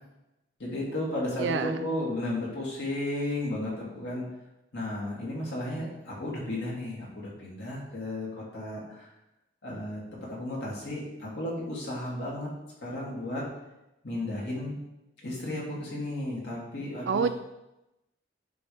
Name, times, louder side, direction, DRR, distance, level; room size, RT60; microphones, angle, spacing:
voice 1, 0.6-4.2 4.7-8.3 8.5-9.1 9.6-10.0 10.3-12.5 12.8-13.4 14.0-14.8 15.2-17.3, left 1 dB, 80° left, -5 dB, 2.5 m, -33 dB
voice 2, 1.4-1.9 17.1-17.3, right 5 dB, 90° right, 10 dB, 0.4 m, -27 dB
9.5 x 4.2 x 3.4 m, 0.93 s
head